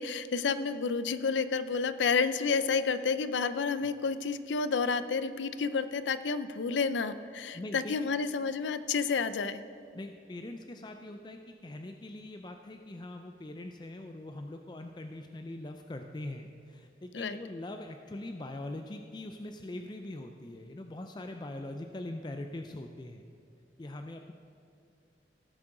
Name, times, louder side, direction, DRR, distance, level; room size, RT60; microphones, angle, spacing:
voice 1, 0.0-9.6 17.1-17.4, left 5 dB, 90° left, 13 dB, 0.5 m, -30 dB
voice 2, 7.5-7.9 9.9-23.2 23.8-24.3, left 1 dB, 25° left, 5 dB, 0.4 m, -42 dB
16.5 x 7.6 x 3.8 m, 2.5 s
head